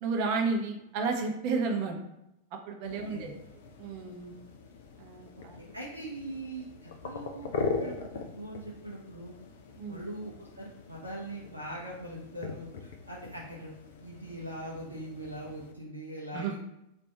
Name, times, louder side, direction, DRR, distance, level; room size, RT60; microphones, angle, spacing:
voice 1, 0.0-2.0 2.5-3.3 3.8-4.3 5.0-5.6 9.8-10.0 16.3-16.6, right 4 dB, 45° right, 2 dB, 0.7 m, -32 dB
sound 1, 2.8-15.7, left 4 dB, 60° left, 0.5 m, -41 dB
voice 2, 2.8-3.3 5.4-9.3 9.9-13.7 14.0-16.6, right 1 dB, 80° right, -3 dB, 0.6 m, -42 dB
3.3 x 2.6 x 4.3 m, 0.85 s
figure-of-eight pair, 90°, 0 cm